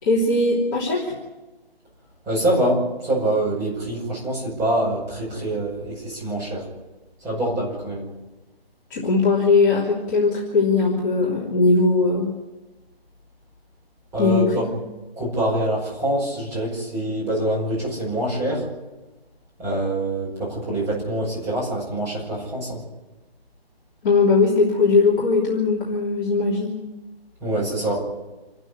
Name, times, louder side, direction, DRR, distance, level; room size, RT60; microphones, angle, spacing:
voice 1, 0.0-1.1 8.9-12.3 14.2-14.7 24.0-26.8, left 3 dB, 20° left, -6 dB, 3.2 m, -19 dB
voice 2, 2.3-6.7 7.2-8.1 14.1-14.6 15.2-18.6 19.6-22.8 27.4-28.1, right 1 dB, 10° right, -5 dB, 5.5 m, -25 dB
28.0 x 12.5 x 9.7 m, 1.1 s
figure-of-eight pair, 165°, 31 cm